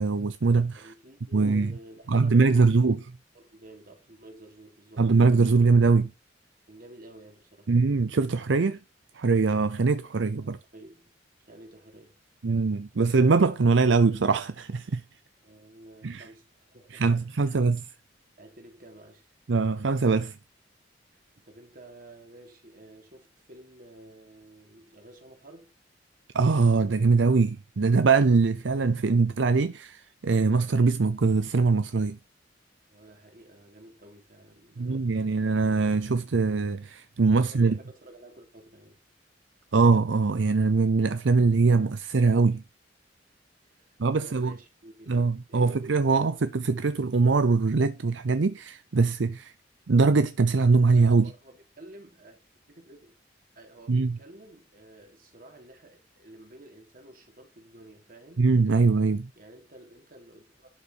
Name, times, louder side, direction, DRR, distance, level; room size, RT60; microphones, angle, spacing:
voice 1, 0.0-0.9 1.3-1.7 2.1-3.0 5.0-6.1 7.7-8.8 9.1-10.6 12.4-15.0 16.0-16.2 16.9-17.9 19.5-20.4 26.3-32.2 34.8-37.8 39.7-42.6 44.0-44.5 45.1-49.5 49.9-51.3 53.9-54.2 58.4-59.3, right 4 dB, 75° right, 0.6 m, -22 dB
voice 2, 0.7-2.9 3.3-5.1 6.7-7.7 10.4-11.1 11.4-12.2 15.4-17.5 18.4-19.3 21.1-25.7 32.9-35.3 37.3-39.0 43.6-45.2 45.5-45.8 51.1-52.4 52.7-53.1 53.5-58.5 59.4-60.7, right 1 dB, 50° right, 3.3 m, -51 dB
11.5 x 6.8 x 4.2 m
head